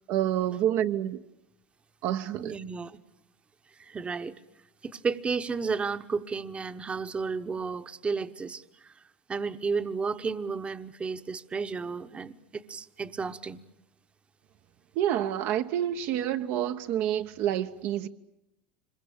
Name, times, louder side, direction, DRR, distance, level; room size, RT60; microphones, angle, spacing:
voice 1, 0.1-1.2 2.0-2.6 14.9-18.1, right 11 dB, 60° right, 1.0 m, -28 dB
voice 2, 2.4-3.0 3.8-4.3 4.8-8.9 9.3-13.6, right 5 dB, 25° right, 1.1 m, -32 dB
26.0 x 22.5 x 8.7 m
supercardioid pair, 105°, 5 cm